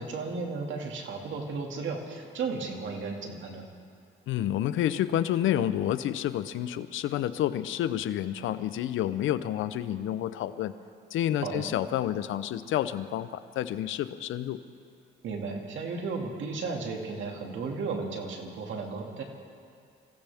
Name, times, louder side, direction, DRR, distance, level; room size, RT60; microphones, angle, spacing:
voice 1, 0.0-3.7 11.4-11.7 15.2-19.2, right 4 dB, 75° right, 1 dB, 2.3 m, -34 dB
voice 2, 4.3-10.7 11.1-14.6, left 11 dB, 80° left, 13 dB, 0.7 m, -29 dB
25.5 x 16.0 x 3.5 m, 2.3 s
cardioid pair, 90°, 20 cm